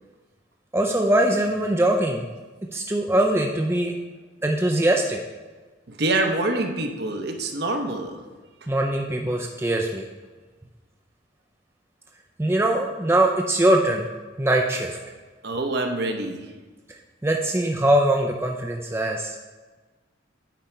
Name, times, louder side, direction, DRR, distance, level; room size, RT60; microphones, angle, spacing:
voice 1, 0.7-2.3 2.7-3.9 4.4-5.2 8.7-10.1 12.4-14.1 14.4-15.0 17.2-19.4, right 1 dB, 10° right, 1 dB, 0.4 m, -22 dB
voice 2, 5.9-8.2 15.4-16.5, right 2 dB, 50° right, 4 dB, 0.8 m, -26 dB
9.1 x 5.1 x 4.4 m, 1.3 s
head